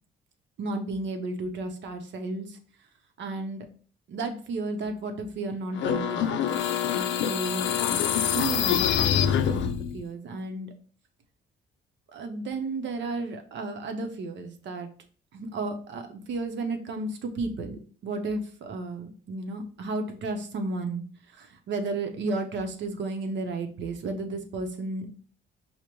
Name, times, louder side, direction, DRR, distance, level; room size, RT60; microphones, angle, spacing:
voice 1, 0.6-2.6 3.2-3.7 4.1-6.4 7.2-10.7 12.1-14.9 15.3-21.0 21.3-25.1, right 3 dB, 65° right, 5 dB, 0.7 m, -33 dB
sound 1, 5.7-10.0, left 9 dB, 70° left, 0.4 m, -25 dB
4.8 x 2.1 x 3.0 m, 0.43 s
cardioid pair, 90°, 20 cm